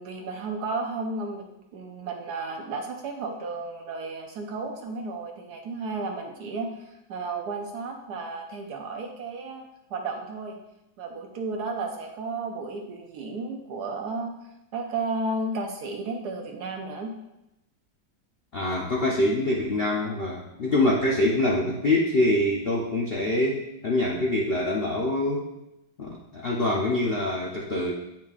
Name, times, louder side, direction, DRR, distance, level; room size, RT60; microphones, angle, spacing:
voice 1, 0.0-1.5 1.7-10.6 11.0-14.3 14.7-17.1, right 3 dB, 65° right, 3 dB, 1.2 m, -33 dB
voice 2, 18.5-25.5 26.0-27.9, left 1 dB, 55° left, -3 dB, 0.6 m, -25 dB
8.8 x 6.0 x 2.4 m, 0.89 s
omnidirectional pair, 2.0 m